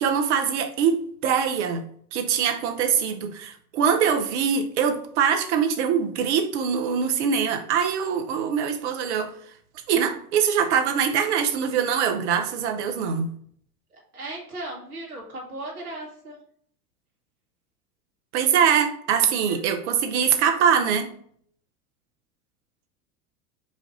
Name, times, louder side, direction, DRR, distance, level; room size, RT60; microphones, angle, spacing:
voice 1, 0.0-1.8 2.1-9.3 9.9-13.3 18.3-21.1, right 7 dB, 50° right, 0.8 m, -23 dB
voice 2, 13.9-16.4 19.5-19.6, right 2 dB, 70° right, 1.8 m, -37 dB
5.1 x 2.5 x 4.0 m
figure-of-eight pair, 85°, 46 cm